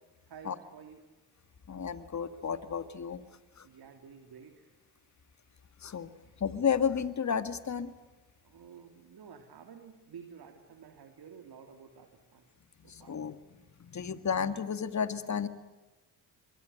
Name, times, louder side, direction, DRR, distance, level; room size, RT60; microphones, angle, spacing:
voice 1, 0.3-1.0 3.6-4.7 6.2-6.4 8.4-12.5 12.8-13.2, right 7 dB, 55° right, 6 dB, 2.9 m, -51 dB
voice 2, 1.7-3.2 3.6-3.7 5.8-6.1 6.4-7.9 12.9-13.4 13.8-15.5, left 7 dB, 40° left, 11 dB, 2.0 m, -32 dB
26.0 x 23.0 x 7.9 m, 1.2 s
supercardioid pair, 60°, 44 cm